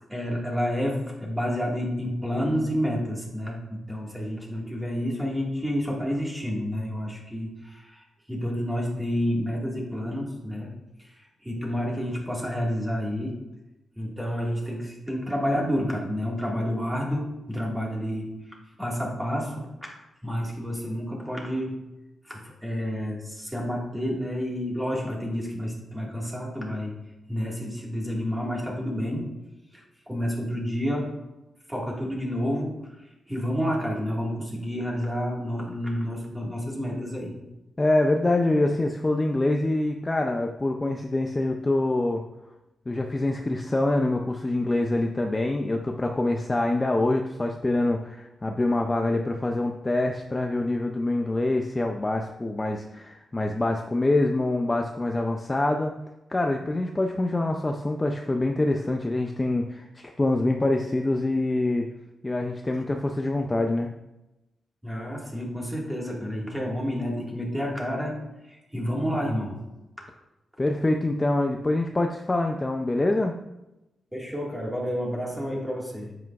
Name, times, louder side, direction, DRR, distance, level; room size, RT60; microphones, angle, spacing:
voice 1, 0.1-10.7 11.0-13.4 14.0-21.8 22.2-27.0 27.3-29.3 29.7-31.2 31.7-37.4 64.8-69.6 74.1-76.1, equal, 10° right, -2 dB, 1.7 m, -30 dB
voice 2, 37.8-42.2 42.9-55.9 56.3-61.9 62.2-63.9 70.6-73.3, left 2 dB, 15° left, 3 dB, 0.4 m, -25 dB
9.2 x 7.9 x 2.4 m, 0.97 s
wide cardioid pair, 170°, 0 cm